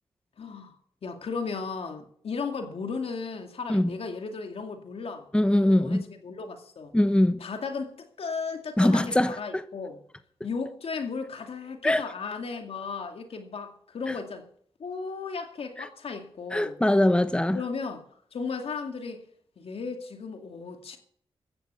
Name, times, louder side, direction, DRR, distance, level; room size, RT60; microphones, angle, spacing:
voice 1, 0.4-0.7 1.0-5.3 5.6-6.9 7.4-10.0 10.4-14.4 14.8-16.8 17.5-18.0 18.3-19.2 19.6-21.0, left 4 dB, 75° left, 2.3 m, -35 dB
voice 2, 5.3-6.0 6.9-7.4 8.8-9.6 11.8-12.1 14.1-14.2 15.8-15.9 16.5-17.6, left 1 dB, 10° left, 1.1 m, -22 dB
14.5 x 11.0 x 7.0 m
cardioid pair, 60°, 10 cm